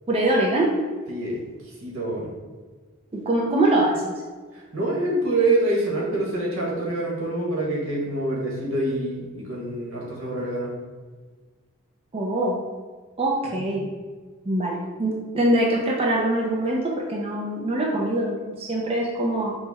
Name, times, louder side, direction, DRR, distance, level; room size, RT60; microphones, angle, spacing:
voice 1, 0.1-0.7 3.1-4.1 12.1-12.6 13.2-13.9 14.5-19.6, right 1 dB, 30° right, -2 dB, 0.5 m, -23 dB
voice 2, 1.1-2.3 4.5-10.7 13.4-13.6, right 2 dB, 75° right, -4 dB, 1.4 m, -26 dB
5.6 x 2.2 x 4.1 m, 1.4 s
head